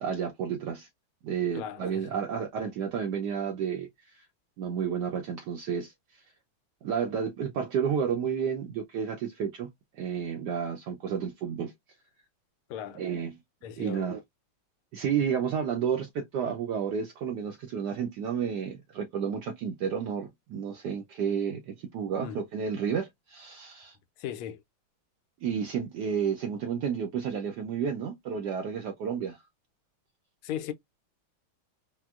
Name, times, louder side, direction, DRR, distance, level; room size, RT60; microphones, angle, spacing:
voice 1, 0.0-0.9 1.2-4.2 4.6-5.9 6.8-11.7 12.9-13.4 13.8-14.2 14.9-24.0 25.4-29.4, right 7 dB, 75° right, 1.0 m, -31 dB
voice 2, 1.5-2.2 12.7-13.0 13.6-14.1 22.2-22.4 24.2-24.6 30.4-30.7, left 10 dB, 90° left, 1.5 m, -37 dB
4.3 x 2.0 x 2.3 m
omnidirectional pair, 2.3 m